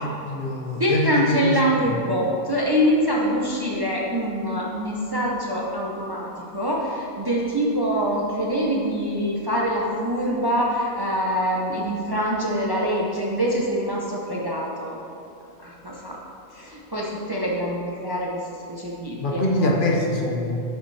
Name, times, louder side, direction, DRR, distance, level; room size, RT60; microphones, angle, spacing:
voice 1, 0.2-1.4 19.2-20.6, left 1 dB, 50° left, 0 dB, 0.9 m, -24 dB
voice 2, 0.8-15.0 15.6-16.2 16.5-18.4 18.7-19.7, equal, 25° right, -3 dB, 0.6 m, -24 dB
8.0 x 5.6 x 3.3 m, 2.9 s
omnidirectional pair, 1.2 m